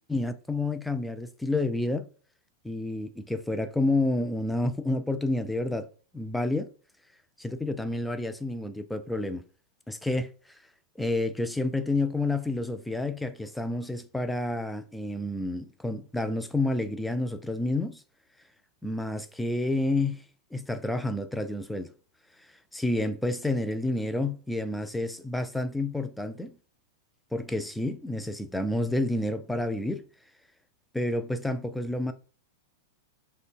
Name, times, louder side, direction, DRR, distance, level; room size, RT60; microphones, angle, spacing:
voice 1, 0.1-2.1 2.6-5.9 6.1-6.7 7.4-9.4 9.9-10.6 11.0-18.0 18.8-20.2 20.5-21.9 22.7-26.5 27.3-30.0 30.9-32.1, left 2 dB, 5° left, 0.3 m, -29 dB
3.6 x 2.2 x 2.4 m
figure-of-eight pair, 95°, 0 cm